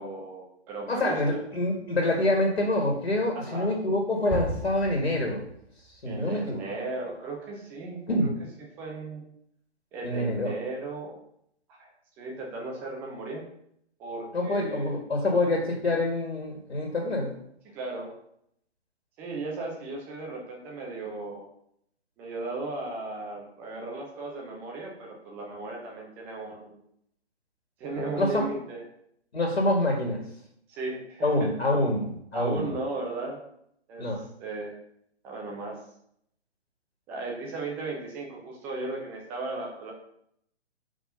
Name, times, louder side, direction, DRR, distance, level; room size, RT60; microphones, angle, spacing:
voice 1, 0.0-1.4 3.3-3.7 6.1-8.3 8.8-9.2 9.9-11.2 11.8-11.9 12.2-13.4 14.0-15.0 17.7-18.1 19.2-21.5 22.2-26.8 27.8-28.8 30.7-31.5 32.3-33.4 33.9-34.1 34.4-34.7 35.2-35.8 37.1-39.9, right 3 dB, 5° right, -1 dB, 0.5 m, -36 dB
voice 2, 0.9-5.4 6.0-6.6 8.1-8.3 10.0-10.5 14.3-17.3 28.2-28.4 29.3-30.2 31.2-32.7 34.0-34.2, left 1 dB, 65° left, 1 dB, 1.9 m, -26 dB
sound 1, 4.3-6.2, right 1 dB, 20° left, 1.9 m, -35 dB
5.4 x 4.8 x 5.4 m, 0.71 s
figure-of-eight pair, 130°, 33 cm